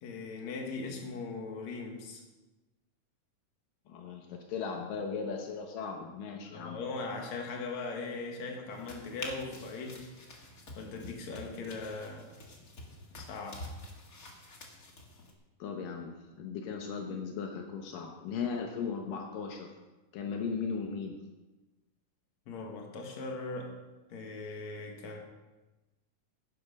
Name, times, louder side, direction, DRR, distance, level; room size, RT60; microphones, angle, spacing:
voice 1, 0.0-2.2 6.4-10.1 10.8-12.4 13.1-13.7 22.5-23.8 24.1-25.2, left 3 dB, 60° left, 2 dB, 2.9 m, -39 dB
voice 2, 3.9-6.8 15.6-19.7 20.1-21.2, left 5 dB, 80° left, 2 dB, 2.7 m, -37 dB
sound 1, 8.7-15.3, left 2 dB, 35° left, 1.4 m, -47 dB
12.5 x 11.0 x 5.3 m, 1.1 s
omnidirectional pair, 3.9 m